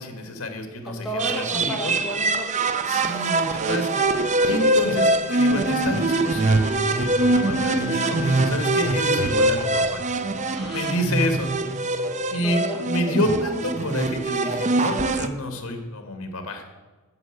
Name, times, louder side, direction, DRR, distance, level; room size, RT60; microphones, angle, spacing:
voice 1, 0.0-1.9 2.9-4.0 4.4-10.0 10.7-11.5 12.3-16.6, left 1 dB, 75° left, 5 dB, 2.0 m, -29 dB
voice 2, 0.8-3.2 10.5-11.0 11.8-12.8, right 1 dB, ahead, -4 dB, 3.0 m, -34 dB
sound 1, 1.2-15.3, right 2 dB, 35° right, 0.6 m, -23 dB
sound 2, 3.9-10.0, left 9 dB, 50° left, 2.1 m, -38 dB
9.7 x 8.0 x 7.9 m, 1.2 s
head